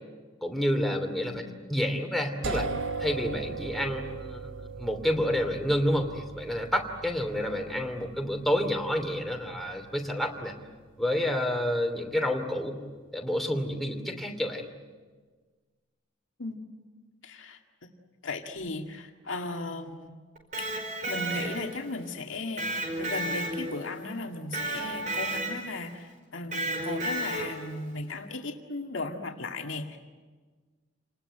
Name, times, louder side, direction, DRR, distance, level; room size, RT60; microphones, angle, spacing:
voice 1, 0.4-1.4 1.7-2.7 3.0-10.5 11.0-12.8 13.1-14.7, equal, ahead, 2 dB, 2.9 m, -29 dB
sound 1, 2.4-12.2, right 4 dB, 85° right, 1.1 m, -39 dB
voice 2, 17.2-17.9 18.2-20.2 20.6-20.7 21.1-22.7 23.0-30.0, left 2 dB, 90° left, 3 dB, 2.0 m, -36 dB
Electric guitar, 20.4-21.9 22.6-24.0 24.5-25.8 26.5-27.7, right 1 dB, 45° right, 4.9 m, -32 dB
28.0 x 20.0 x 9.0 m, 1.4 s
head